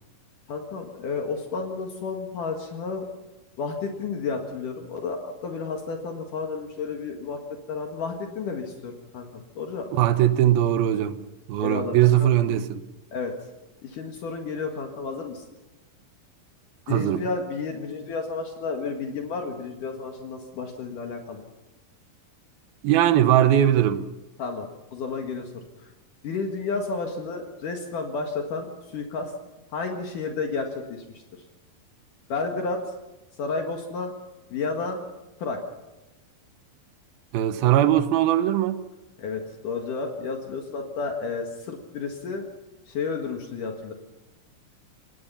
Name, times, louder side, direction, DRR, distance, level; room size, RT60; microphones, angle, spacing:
voice 1, 0.5-3.1 3.6-7.4 7.7-9.9 11.6-12.3 13.1-13.3 13.8-15.4 16.9-21.4 24.4-25.5 26.2-29.3 29.7-31.0 32.3-32.8 33.4-34.1 34.5-35.0 35.4-35.6 39.2-42.4 42.9-43.9, left 4 dB, 60° left, 3.1 m, -31 dB
voice 2, 9.9-11.2 11.5-12.8 16.9-17.2 22.8-24.0 37.3-38.8, right 12 dB, 80° right, 2.8 m, -20 dB
27.0 x 19.5 x 5.6 m
omnidirectional pair, 4.3 m